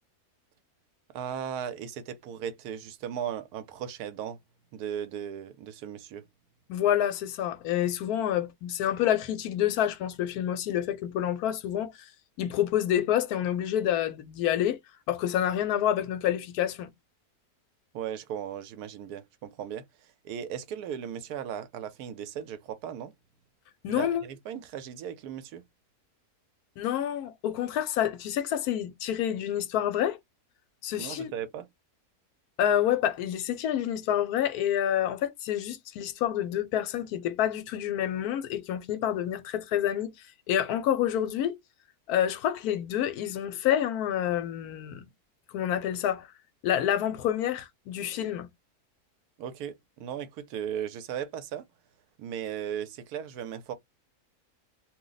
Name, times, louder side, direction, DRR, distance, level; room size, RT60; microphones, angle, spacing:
voice 1, 1.1-4.4 4.7-6.2 17.9-23.1 23.9-25.6 31.0-31.7 49.4-51.6 52.2-53.7, right 9 dB, 80° right, 1.1 m, -37 dB
voice 2, 6.7-11.9 12.4-14.8 15.1-16.9 23.8-24.2 26.8-30.2 30.8-31.3 32.6-40.1 40.5-41.5 42.1-45.1 45.5-46.3 46.6-48.5, left 11 dB, 75° left, 1.0 m, -28 dB
2.6 x 2.0 x 3.8 m
omnidirectional pair, 1.7 m